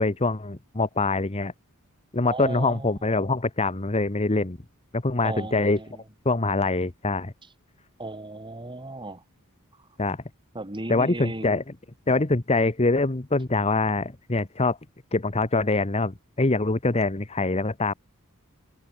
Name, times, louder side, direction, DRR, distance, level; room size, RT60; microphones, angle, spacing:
voice 1, 0.0-1.5 2.1-4.6 4.9-5.8 6.2-7.3 10.0-10.2 10.9-11.6 12.1-14.8 15.1-17.9, left 3 dB, 30° left, 1.2 m, -24 dB
voice 2, 2.3-2.9 5.2-6.0 8.0-9.2 10.5-11.5, right 2 dB, 20° right, 2.6 m, -35 dB
head